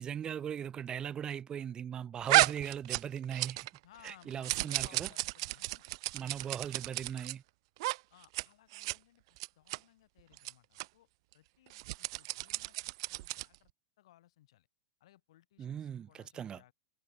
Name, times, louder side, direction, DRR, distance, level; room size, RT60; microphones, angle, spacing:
voice 1, 0.0-3.7 4.0-5.1 6.1-7.4 15.6-16.6, right 8 dB, 25° right, 0.9 m, -39 dB
sound 1, 2.3-3.8 4.0-7.3 7.8-8.0 8.2-8.4 8.7-9.0 9.4-9.8 10.4-10.5 10.8-10.9 11.7-13.6, right 21 dB, 55° right, 0.3 m, -32 dB
voice 2, 3.8-5.9 8.1-11.1 11.3-13.7 14.0-14.7 15.0-16.7, left 14 dB, 65° left, 7.3 m, -62 dB
hypercardioid pair, 100°, 3 cm